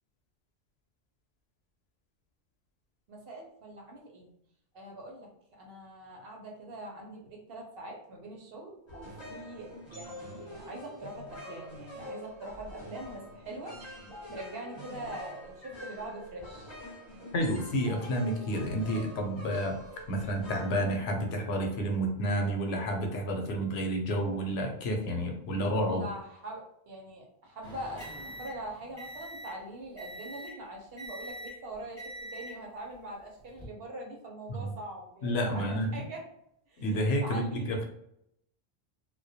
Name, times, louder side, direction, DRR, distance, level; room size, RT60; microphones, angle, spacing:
voice 1, 3.1-4.3 4.7-13.8 14.3-16.7 25.9-36.3 36.7-37.8, right 1 dB, 70° right, -1 dB, 0.9 m, -43 dB
sound 1, 8.9-21.6, left 1 dB, 30° left, 0.7 m, -46 dB
voice 2, 17.3-19.8 20.1-26.0 34.5-34.7 35.2-35.9 36.8-37.8, equal, 90° left, 3 dB, 0.9 m, -30 dB
sound 2, 27.6-29.6 30.0-30.6 31.0-31.6 32.0-32.6 33.4-33.7, equal, 5° right, 0.9 m, -44 dB
2.2 x 2.2 x 2.6 m, 0.75 s
omnidirectional pair, 1.1 m